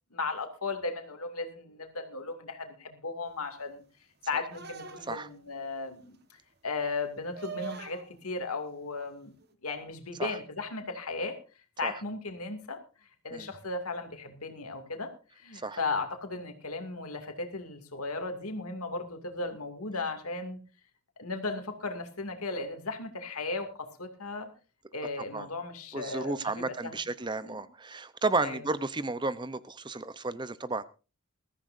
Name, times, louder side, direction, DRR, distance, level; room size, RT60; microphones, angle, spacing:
voice 1, 0.1-3.8 4.3-6.2 6.6-9.3 9.6-11.4 11.8-12.8 13.2-20.6 21.2-23.7 24.0-24.5 24.9-26.9 27.5-27.6 28.4-28.6, left 3 dB, 90° left, 5 dB, 2.5 m, -36 dB
sound 1, 4.5-5.4 7.3-8.1 9.4-9.5, right 6 dB, 45° right, 1.4 m, -42 dB
voice 2, 25.9-30.8, right 3 dB, 20° right, 15 dB, 0.7 m, -33 dB
21.0 x 14.0 x 2.6 m, 0.33 s
head